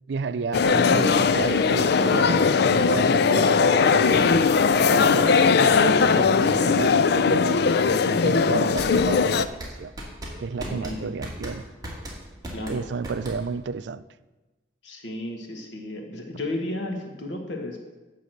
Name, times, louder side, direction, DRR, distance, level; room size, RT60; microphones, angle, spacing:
voice 1, 0.1-4.4 4.9-9.5 9.8-9.9 10.4-11.6 12.7-14.0, right 5 dB, 70° right, 0.4 m, -31 dB
sound 1, 0.5-9.4, left 5 dB, 65° left, 0.4 m, -19 dB
sound 2, 8.8-13.7, equal, 20° right, 2.5 m, -37 dB
voice 2, 10.6-11.1 12.5-12.9 14.8-17.8, left 1 dB, 85° left, 1.8 m, -33 dB
12.0 x 4.2 x 7.9 m
head